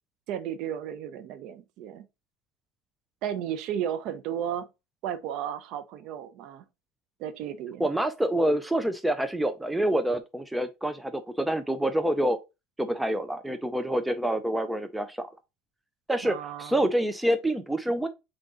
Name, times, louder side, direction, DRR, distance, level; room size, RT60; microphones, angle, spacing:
voice 1, 0.3-2.1 3.2-4.7 5.0-6.6 7.2-7.9 16.2-16.8, right 9 dB, 55° right, 0.7 m, -34 dB
voice 2, 7.8-12.4 12.8-15.3 16.1-18.1, right 1 dB, 5° right, 0.4 m, -27 dB
3.9 x 3.7 x 3.7 m
supercardioid pair, 140°, 0 cm